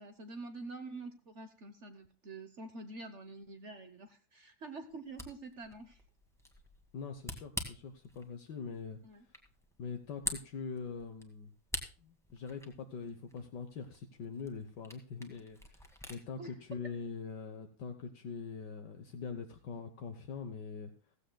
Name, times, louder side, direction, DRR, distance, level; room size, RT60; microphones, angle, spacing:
voice 1, 0.0-6.0 9.0-9.2 16.4-16.5, right 3 dB, 45° right, 8 dB, 1.1 m, -47 dB
Camera, 4.9-16.2, equal, ahead, 1.7 m, -47 dB
voice 2, 6.9-9.0 9.8-11.5 12.0-20.9, left 5 dB, 70° left, 6 dB, 1.6 m, -43 dB
15.5 x 15.5 x 2.2 m, 0.37 s
omnidirectional pair, 2.0 m